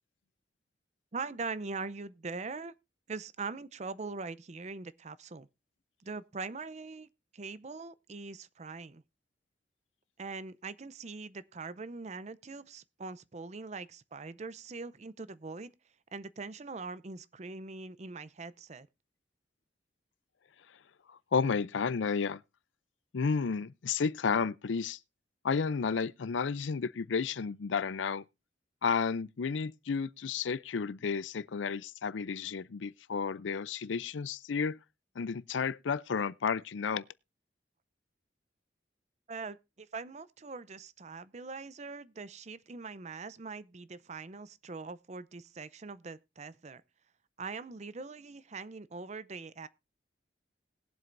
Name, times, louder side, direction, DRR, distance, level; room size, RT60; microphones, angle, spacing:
voice 1, 1.1-2.7 3.1-5.5 6.0-7.1 7.3-9.0 10.2-15.7 16.1-18.9 39.3-46.8 47.4-49.7, right 4 dB, 40° right, 0.5 m, -42 dB
voice 2, 21.1-22.4 23.1-25.0 25.4-28.2 28.8-34.8 35.2-37.0, left 5 dB, 85° left, 0.5 m, -32 dB
20.5 x 7.7 x 2.6 m
head